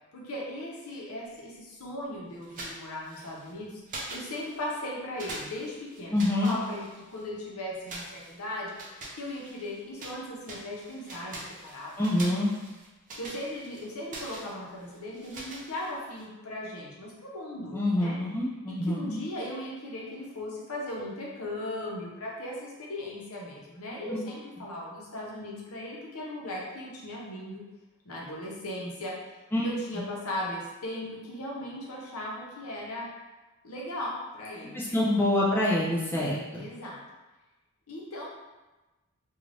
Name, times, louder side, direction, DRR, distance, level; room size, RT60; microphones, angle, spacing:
voice 1, 0.1-3.8 4.1-6.2 6.4-8.8 9.1-12.0 13.2-18.2 18.8-27.6 28.0-29.1 29.6-33.1 33.6-35.0 36.5-37.0 37.9-38.3, left 1 dB, 70° left, -3 dB, 0.7 m, -37 dB
sound 1, 2.4-3.5 3.9-4.8 5.2-7.3 7.9-10.2 10.4-16.2, right 1 dB, 35° right, 0.5 m, -44 dB
voice 2, 6.1-6.5 12.0-12.5 17.7-19.2 24.1-24.2 29.5-29.7 34.7-36.7, left 1 dB, 10° left, -6 dB, 0.4 m, -26 dB
2.5 x 2.3 x 3.2 m, 1.1 s
head